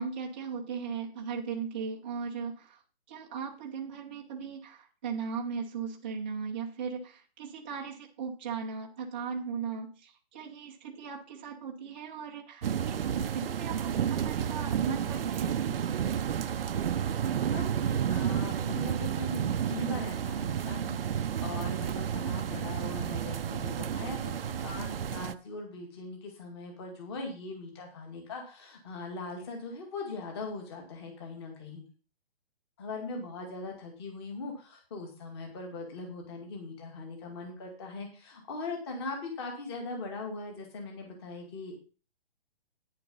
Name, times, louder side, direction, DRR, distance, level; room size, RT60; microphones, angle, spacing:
voice 1, 0.0-2.8 3.1-15.8, right 6 dB, 10° right, -2 dB, 0.6 m, -37 dB
sound 1, 12.6-25.3, right 8 dB, 65° right, 0.6 m, -31 dB
voice 2, 17.3-31.8 32.8-41.7, left 3 dB, 25° left, 2 dB, 2.1 m, -40 dB
9.7 x 6.9 x 5.4 m, 0.36 s
hypercardioid pair, 170°, 32 cm